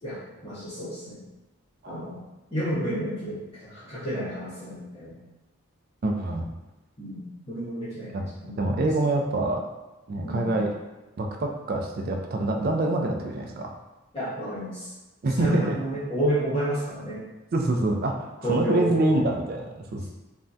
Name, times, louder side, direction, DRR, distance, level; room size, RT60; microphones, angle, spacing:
voice 1, 0.0-1.2 1.9-2.2 2.5-5.2 7.0-8.8 10.2-10.5 14.1-14.9 15.4-17.2 18.4-19.3, right 1 dB, 25° left, -12 dB, 0.7 m, -31 dB
voice 2, 6.0-6.5 8.1-8.2 8.6-9.6 10.1-10.7 11.2-13.7 15.2-15.8 17.5-20.1, right 2 dB, 45° right, 2 dB, 0.3 m, -26 dB
3.4 x 2.1 x 2.6 m, 1.1 s
head